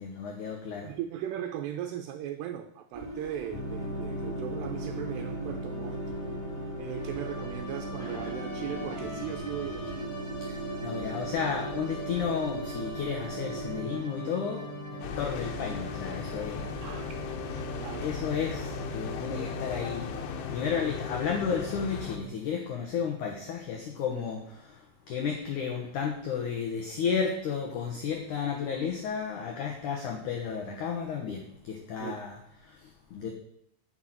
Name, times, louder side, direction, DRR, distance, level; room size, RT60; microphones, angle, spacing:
voice 1, 0.0-0.9 10.4-14.6 14.9-16.7 18.0-20.2 20.5-33.3, left 6 dB, 70° left, 2 dB, 1.9 m, -33 dB
voice 2, 0.8-6.0 6.8-10.1 16.8-17.2 17.8-18.1 32.0-32.2, right 11 dB, 80° right, 7 dB, 2.6 m, -38 dB
sound 1, 2.9-13.8, right 2 dB, 10° right, 2.9 m, -40 dB
sound 2, 3.5-22.2, equal, 35° left, 2.4 m, -39 dB
sound 3, 15.0-22.2, left 7 dB, 90° left, 3.3 m, -38 dB
10.0 x 5.6 x 7.9 m, 0.75 s
omnidirectional pair, 5.2 m